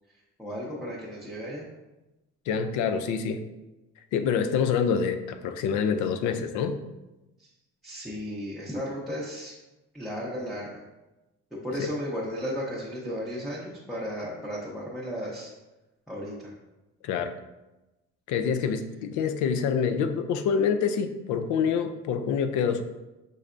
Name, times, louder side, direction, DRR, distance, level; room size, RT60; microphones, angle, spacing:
voice 1, 0.4-1.6 7.8-9.5 9.9-10.6 11.6-15.5 16.1-16.3, equal, ahead, -7 dB, 0.7 m, -34 dB
voice 2, 2.5-3.4 4.1-6.8 11.7-11.9 17.0-17.4 18.3-22.8, left 6 dB, 80° left, 9 dB, 0.5 m, -26 dB
5.3 x 3.3 x 2.5 m, 1.0 s
cardioid pair, 130°, 29 cm